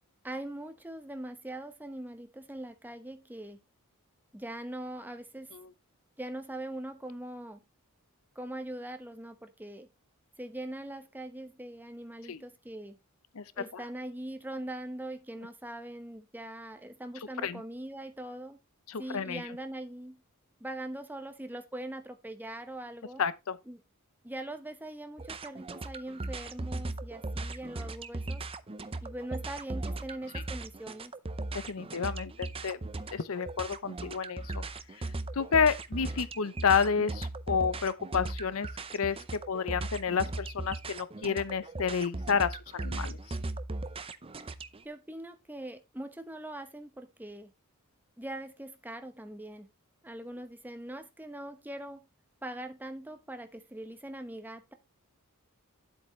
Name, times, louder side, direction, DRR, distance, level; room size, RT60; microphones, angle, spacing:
voice 1, 0.2-3.6 4.3-5.6 6.2-7.6 8.3-9.9 10.4-13.0 13.5-18.6 19.0-20.2 20.6-23.2 23.7-23.8 24.2-28.4 29.0-31.1 44.8-47.5 48.2-49.7 50.0-52.1 52.4-54.7, right 1 dB, 10° right, 1.0 m, -41 dB
voice 2, 13.3-13.8 17.4-17.6 18.9-19.4 23.2-23.6 31.5-32.8 33.1-34.6 34.9-35.1 35.3-43.4, left 6 dB, 65° left, 0.7 m, -30 dB
sound 1, 25.2-44.8, right 2 dB, 25° right, 0.6 m, -38 dB
10.0 x 8.0 x 3.2 m
head